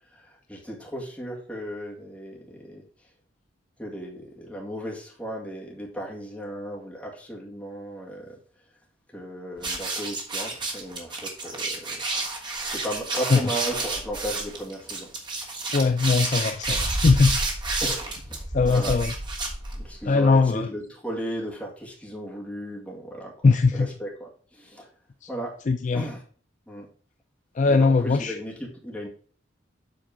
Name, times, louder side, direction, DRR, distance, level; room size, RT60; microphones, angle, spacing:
voice 1, 0.1-2.8 3.8-8.4 9.1-12.0 12.6-15.1 17.8-18.0 18.6-19.0 19.7-23.3 23.7-24.9 25.3-25.6 25.9-26.2 26.7-26.9 27.7-29.1, right 1 dB, 5° left, 2.0 m, -35 dB
sound 1, 9.6-20.0, right 2 dB, 25° right, 1.4 m, -30 dB
voice 2, 15.7-17.4 18.5-19.1 20.0-20.7 23.4-23.9 25.2-25.3 25.7-26.1 27.5-28.4, left 4 dB, 40° left, 0.4 m, -20 dB
7.6 x 4.5 x 5.1 m
head